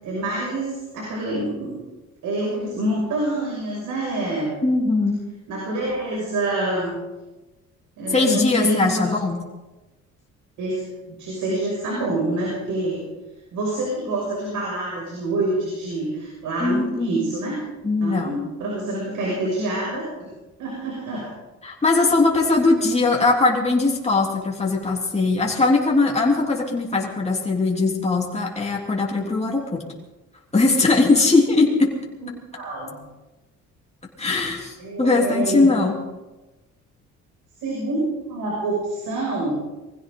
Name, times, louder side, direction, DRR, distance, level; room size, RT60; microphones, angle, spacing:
voice 1, 0.0-1.7 2.2-4.5 5.5-6.9 8.0-9.1 10.6-13.0 13.5-17.6 18.0-20.3 20.6-21.3 32.2-33.0 34.8-35.7 37.6-39.5, right 1 dB, 85° right, -4 dB, 6.6 m, -26 dB
voice 2, 4.6-5.2 8.1-9.4 16.6-17.2 17.8-18.3 21.6-29.8 30.5-31.9 34.2-36.0, left 3 dB, 20° left, -2 dB, 3.5 m, -20 dB
22.5 x 16.0 x 4.0 m, 1.1 s
cardioid pair, 90°, 30 cm